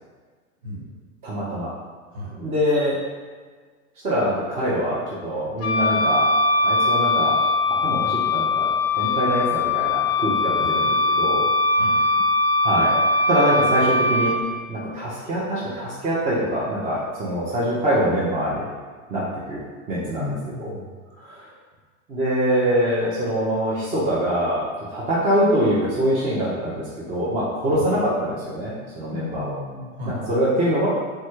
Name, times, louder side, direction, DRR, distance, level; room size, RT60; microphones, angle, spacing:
voice 1, 0.6-0.9 2.1-2.3 10.6-10.8 11.7-12.2 20.2-20.9 27.7-27.9 29.1-30.2, left 3 dB, 45° right, -5 dB, 1.2 m, -34 dB
voice 2, 1.2-1.7 2.3-2.9 4.0-6.3 6.6-7.4 7.7-8.7 8.9-11.4 12.6-13.0 13.3-14.3 14.7-18.7 19.1-19.6 19.9-20.3 20.6-20.7 21.2-21.5 22.1-29.5 30.3-30.9, equal, 15° right, -8 dB, 0.4 m, -24 dB
Wind instrument woodwind instrument, 5.6-14.4, left 2 dB, 50° left, 0.5 m, -21 dB
3.2 x 2.1 x 3.0 m, 1.5 s
hypercardioid pair, 105°, 44 cm